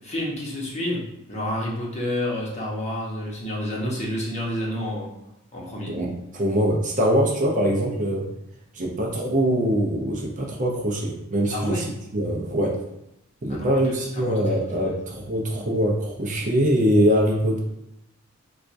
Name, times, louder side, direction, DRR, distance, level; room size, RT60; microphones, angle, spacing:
voice 1, 0.0-1.0 1.3-5.1 5.5-5.9 11.5-11.9 13.5-13.8 14.2-14.4 14.8-14.9, left 1 dB, 30° left, -4 dB, 0.8 m, -29 dB
voice 2, 5.9-8.3 8.7-11.8 12.1-12.8 13.4-17.6, equal, 35° right, 0 dB, 0.5 m, -23 dB
4.2 x 2.3 x 2.5 m, 0.83 s
head